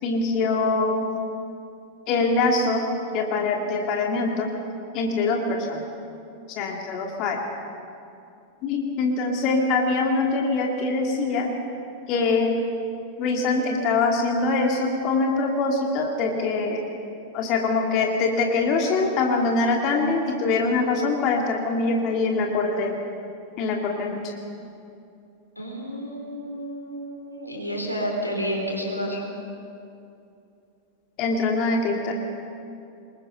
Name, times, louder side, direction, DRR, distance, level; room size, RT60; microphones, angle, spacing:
voice 1, 0.0-1.1 2.1-2.9 3.1-4.5 4.9-5.8 6.6-7.4 8.6-11.6 12.1-12.6 13.2-16.8 17.3-23.0 23.6-24.2 31.2-32.1, left 3 dB, 40° left, 1 dB, 2.4 m, -23 dB
voice 2, 25.6-29.2, equal, 85° left, -1 dB, 4.3 m, -30 dB
26.0 x 22.0 x 5.6 m, 2.6 s
figure-of-eight pair, 90°, 0 cm